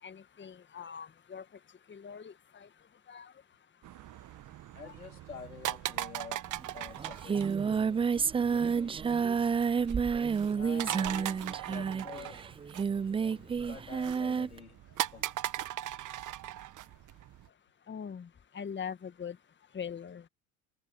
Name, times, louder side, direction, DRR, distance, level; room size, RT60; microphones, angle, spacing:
voice 1, 0.0-1.5 1.9-2.7 3.1-3.3 4.8-4.9 17.9-19.4 19.7-20.3, left 7 dB, 25° left, 1.8 m, -42 dB
sound 1, 3.8-17.5, right 13 dB, 45° right, 1.6 m, -40 dB
voice 2, 4.7-8.1 8.4-9.1 9.4-10.0 10.5-12.4 13.2-14.8 15.1-15.5, left 6 dB, 90° left, 3.6 m, -49 dB
Singing, 6.6-6.7 6.9-14.6, right 6 dB, 15° right, 0.4 m, -30 dB
figure-of-eight pair, 65°, 43 cm